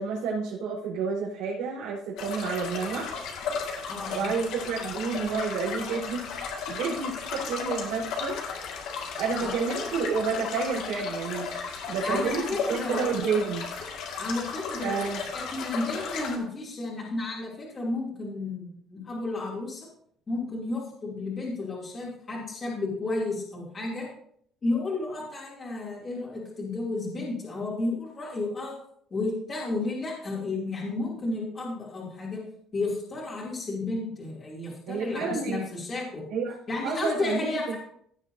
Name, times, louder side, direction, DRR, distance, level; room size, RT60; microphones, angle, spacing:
voice 1, 0.0-3.1 4.1-6.2 6.7-8.4 9.2-11.5 11.9-13.6 14.8-15.2 34.9-35.6 36.3-36.6 36.8-37.8, right 5 dB, 85° right, -8 dB, 4.0 m, -30 dB
sound 1, 2.2-16.4, left 5 dB, 65° left, 1.9 m, -35 dB
voice 2, 3.9-4.3 9.3-9.5 12.0-13.5 14.2-19.9 20.3-24.1 24.6-28.7 29.1-32.4 32.7-36.2 36.7-37.8, left 2 dB, 25° left, -5 dB, 2.8 m, -32 dB
16.5 x 7.2 x 2.7 m, 0.65 s
cardioid pair, 150°, 0 cm